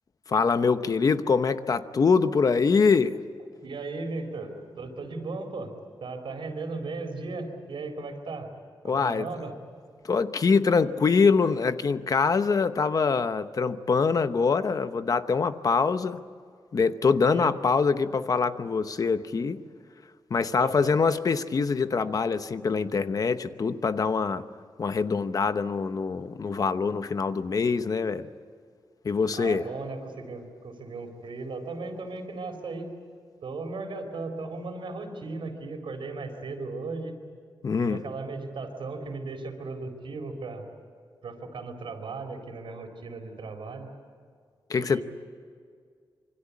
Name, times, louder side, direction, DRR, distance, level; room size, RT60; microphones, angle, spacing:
voice 1, 0.3-3.2 8.8-9.3 10.0-16.2 16.7-19.6 20.3-24.5 24.8-28.3 29.0-29.7 37.6-38.0 44.7-45.0, left 5 dB, 45° left, 0.9 m, -24 dB
voice 2, 3.6-5.7 6.0-8.5 8.8-9.6 17.3-17.5 20.5-20.9 29.4-32.9 33.4-37.1 37.8-40.7 41.2-43.9 44.7-45.0, right 3 dB, 85° right, 4.3 m, -36 dB
26.5 x 25.0 x 8.5 m
wide cardioid pair, 180°, 8 cm